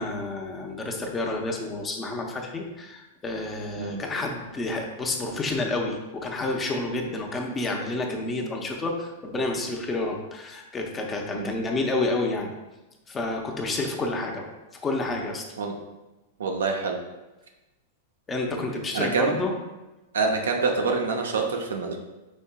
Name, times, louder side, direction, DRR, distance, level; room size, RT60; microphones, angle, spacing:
voice 1, 0.0-12.5 13.1-14.5 14.8-15.4 18.3-19.5, left 2 dB, 20° left, 2 dB, 0.7 m, -29 dB
voice 2, 16.4-17.0 18.9-19.4 20.1-22.0, right 4 dB, 80° right, 2 dB, 0.7 m, -26 dB
5.3 x 3.6 x 2.3 m, 1.1 s
hypercardioid pair, 105°, 0 cm